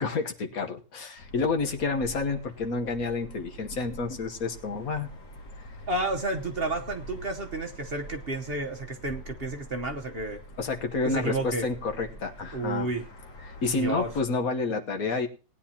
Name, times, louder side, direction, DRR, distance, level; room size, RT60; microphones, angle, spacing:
voice 1, 0.0-5.1 10.6-12.9 13.4-15.3, left 4 dB, 60° left, 5 dB, 1.6 m, -29 dB
sound 1, 1.2-14.2, right 1 dB, 85° left, 2.8 m, -45 dB
voice 2, 5.9-10.4 11.0-11.7 12.5-13.0 13.7-14.1, right 2 dB, 40° right, 4 dB, 1.1 m, -31 dB
19.5 x 9.8 x 2.9 m, 0.35 s
omnidirectional pair, 1.7 m